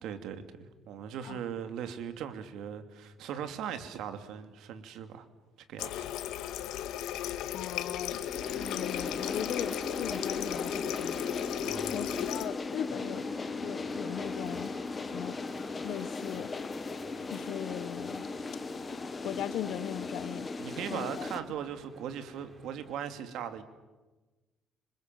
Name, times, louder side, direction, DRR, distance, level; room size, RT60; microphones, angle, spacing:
voice 1, 0.0-5.3 5.7-6.4 11.6-12.0 20.6-23.6, right 8 dB, 70° right, 8 dB, 2.7 m, -39 dB
Water tap faucet, 5.8-12.5, left 12 dB, 85° left, 1.8 m, -36 dB
voice 2, 7.5-8.2 8.5-11.3 11.9-13.3 13.6-14.8 15.0-15.4 15.8-16.5 17.3-18.2 19.2-20.5 20.9-21.3, left 10 dB, 65° left, 14 dB, 1.3 m, -39 dB
sound 1, 8.1-21.4, left 3 dB, 25° left, 1.5 m, -37 dB
sound 2, 12.8-23.0, right 2 dB, 25° right, 3.5 m, -53 dB
27.5 x 25.0 x 7.7 m, 1.2 s
cardioid pair, 155°, 0 cm